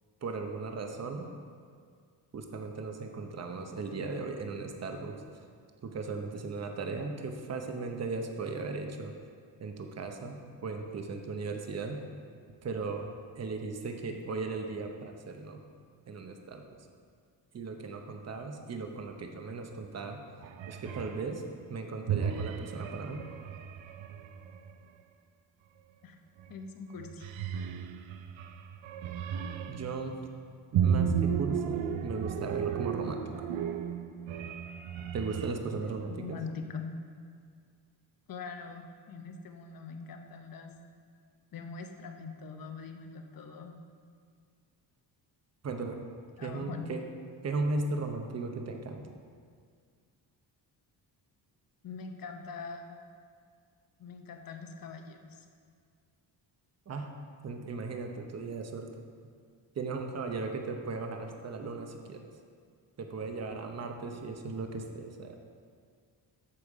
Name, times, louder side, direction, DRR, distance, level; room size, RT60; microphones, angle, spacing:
voice 1, 0.2-1.3 2.3-5.2 5.8-9.1 9.6-12.0 12.6-13.1 13.4-15.6 16.1-16.6 17.5-20.2 20.7-21.4 21.7-23.3 29.7-30.2 30.7-33.3 35.1-36.4 45.6-46.0 46.4-47.0 47.4-49.0 56.9-57.1 57.4-58.9 59.8-62.2 63.0-65.4, right 3 dB, 35° right, 4 dB, 0.8 m, -37 dB
sound 1, 20.4-21.3 22.1-24.7 26.4-26.7 27.0-30.0 30.7-35.5, right 8 dB, 85° right, 0.6 m, -34 dB
voice 2, 26.5-27.3 36.0-36.9 38.3-40.7 41.5-43.7 46.4-46.9 51.8-53.0 54.0-55.5, left 5 dB, 50° left, 5 dB, 0.9 m, -43 dB
8.7 x 7.0 x 4.9 m, 2.1 s
wide cardioid pair, 140°, 44 cm